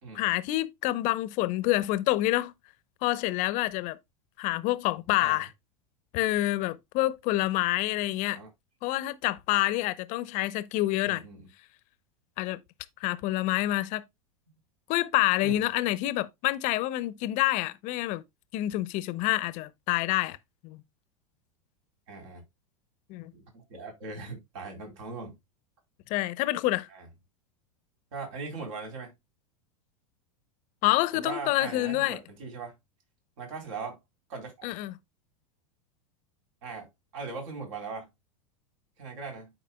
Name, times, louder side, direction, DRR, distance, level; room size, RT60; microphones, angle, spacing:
voice 1, 0.1-2.5 3.0-4.0 4.4-5.5 6.1-8.4 8.8-11.2 12.4-12.6 13.0-14.0 14.9-18.2 18.5-20.4 20.6-20.8 23.1-23.3 26.1-26.9 30.8-32.2 34.6-34.9, left 17 dB, 45° left, 0.7 m, -27 dB
voice 2, 11.0-11.4 15.4-15.6 22.1-22.4 23.3-25.3 26.9-27.1 28.1-29.1 31.1-32.7 33.4-34.0 34.3-34.5 36.6-36.9 37.1-38.1 39.0-39.5, right 4 dB, 60° right, 4.0 m, -39 dB
11.0 x 5.0 x 2.2 m
hypercardioid pair, 95°, 17 cm